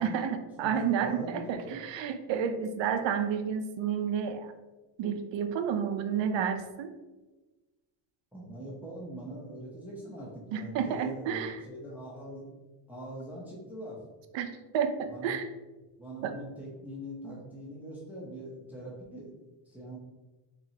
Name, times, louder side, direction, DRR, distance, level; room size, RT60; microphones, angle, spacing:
voice 1, 0.0-4.5 5.0-6.9 10.5-11.6 14.3-15.5 16.2-16.3, right 7 dB, 65° right, 8 dB, 0.5 m, -30 dB
voice 2, 1.0-1.8 8.3-12.4 12.9-14.0 15.1-15.4 16.0-19.3 19.7-20.0, right 1 dB, 5° right, -5 dB, 0.5 m, -42 dB
4.2 x 3.1 x 2.7 m, 1.2 s
cardioid pair, 165°, 49 cm